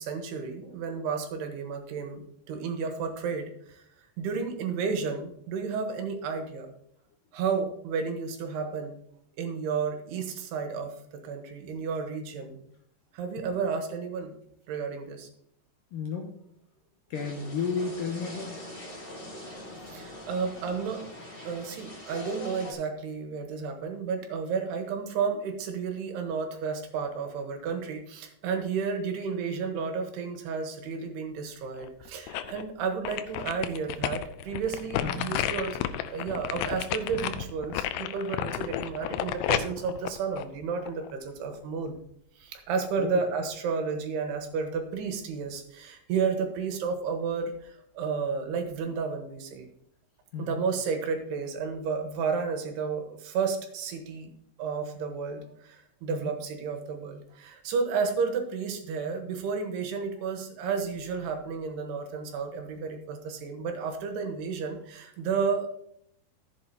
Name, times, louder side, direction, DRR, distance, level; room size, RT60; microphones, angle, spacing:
voice 1, 0.0-3.8 4.2-6.7 7.3-9.0 9.4-12.6 13.1-14.3 14.7-15.3 19.9-21.0 21.4-42.0 42.4-49.7 50.4-54.3 54.6-65.7, right 5 dB, 75° right, 4 dB, 3.2 m, -32 dB
voice 2, 15.9-16.4 17.1-18.7 35.0-35.4 43.0-43.3 50.3-50.7 56.1-56.3, left 5 dB, 70° left, 2 dB, 2.2 m, -33 dB
sound 1, 17.1-22.7, equal, 40° left, 0.7 m, -42 dB
sound 2, 31.8-32.6 33.1-41.1 41.5-41.6, left 11 dB, 85° left, 2.8 m, -32 dB
14.0 x 7.8 x 2.8 m, 0.71 s
omnidirectional pair, 4.9 m